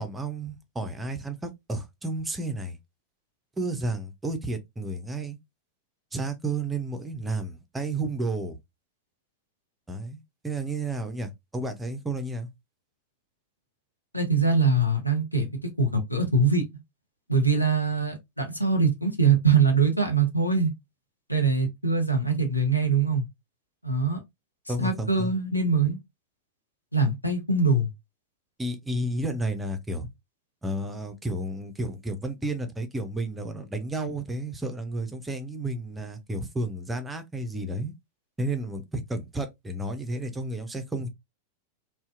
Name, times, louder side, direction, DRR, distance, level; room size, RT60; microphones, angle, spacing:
voice 1, 0.0-2.8 3.6-5.4 6.1-8.6 9.9-12.5 24.7-25.3 28.6-30.1 30.6-37.9 38.4-41.1, right 2 dB, 10° right, 0.4 m, -32 dB
voice 2, 14.1-15.5 15.8-16.6 17.3-20.7 21.3-23.3 23.8-24.2 24.8-26.0 26.9-27.9, right 4 dB, 90° left, 0.6 m, -23 dB
2.6 x 2.1 x 2.4 m
figure-of-eight pair, 90°, 0 cm